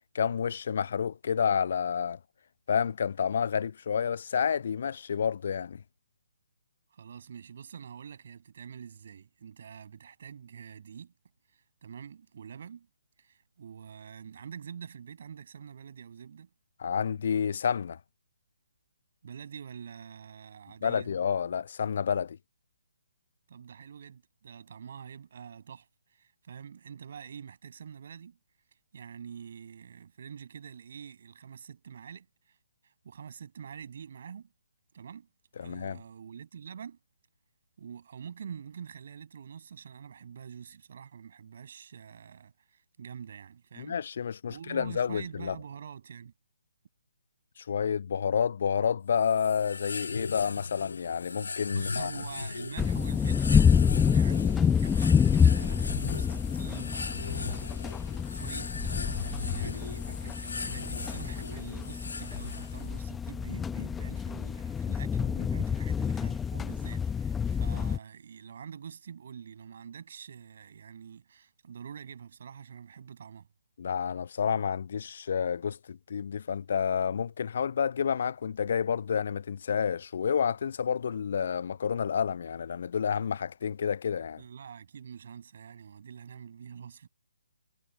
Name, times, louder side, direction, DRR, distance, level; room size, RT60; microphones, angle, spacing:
voice 1, 0.1-2.2 2.7-5.8 16.8-18.0 20.8-22.4 35.6-36.0 43.8-45.6 47.6-52.1 73.8-84.4, left 7 dB, 50° left, 0.8 m, -29 dB
voice 2, 6.9-11.1 11.5-12.9 13.2-16.5 19.2-21.1 23.5-28.4 28.9-32.5 32.8-34.5 34.9-35.3 35.6-37.0 37.8-44.0 44.5-46.3 51.7-57.8 58.1-73.5 84.4-87.1, right 7 dB, 50° right, 6.7 m, -46 dB
sound 1, 49.2-63.0, left 4 dB, 65° left, 1.7 m, -38 dB
sound 2, 52.8-68.0, left 7 dB, 10° left, 0.8 m, -28 dB
figure-of-eight pair, 135°, 0 cm